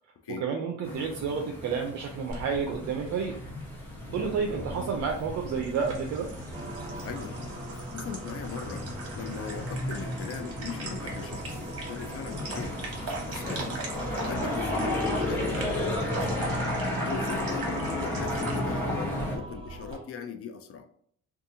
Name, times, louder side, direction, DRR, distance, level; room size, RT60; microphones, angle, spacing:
voice 1, 0.4-3.3 4.1-6.3, right 6 dB, 70° right, 2 dB, 0.5 m, -30 dB
sound 1, 0.8-19.4, left 1 dB, 5° left, 1.0 m, -34 dB
sound 2, 2.3-19.9, right 2 dB, 50° right, 1.0 m, -40 dB
voice 2, 4.0-4.5 7.0-7.4 7.7-13.8 14.2-16.5 16.8-20.9, left 6 dB, 50° left, 7 dB, 0.4 m, -40 dB
sound 3, 6.5-20.0, right 2 dB, 15° right, 0.8 m, -45 dB
2.6 x 2.4 x 2.6 m, 0.62 s
cardioid pair, 90°, 30 cm